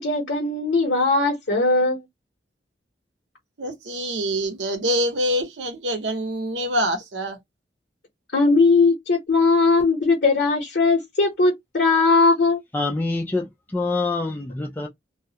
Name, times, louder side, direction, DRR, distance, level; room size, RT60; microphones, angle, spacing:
voice 1, 0.0-2.0 8.3-12.6, left 3 dB, 65° left, 0.9 m, -19 dB
voice 2, 3.6-7.4, equal, 90° right, 0.8 m, -25 dB
voice 3, 12.7-14.9, left 3 dB, 10° left, 0.4 m, -26 dB
2.3 x 2.0 x 2.7 m
head